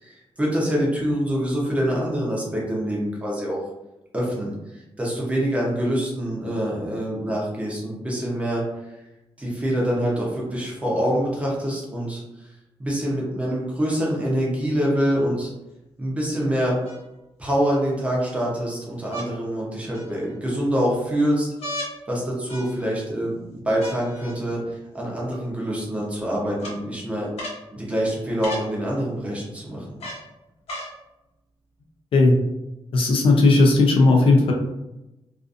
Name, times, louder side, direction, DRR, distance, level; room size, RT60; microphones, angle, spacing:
voice 1, 0.0-3.6 4.1-9.0 9.4-12.5 12.8-15.5 16.0-16.8 17.4-21.8 22.1-27.3 27.7-30.0, equal, 10° right, -4 dB, 0.6 m, -25 dB
sound 1, 15.1-15.2 16.8-17.5 19.1-19.3 19.9-20.5 21.6-21.9 22.5-23.0 23.8-24.3 25.3-25.4 26.6-26.8 27.4-27.6 28.4-28.7 30.0-30.3 30.7-30.9 31.8-31.9, equal, 75° left, 0.8 m, -35 dB
voice 2, 32.9-34.5, left 3 dB, 60° left, 1 dB, 0.4 m, -16 dB
2.4 x 2.4 x 2.4 m, 0.96 s
wide cardioid pair, 180°, 10 cm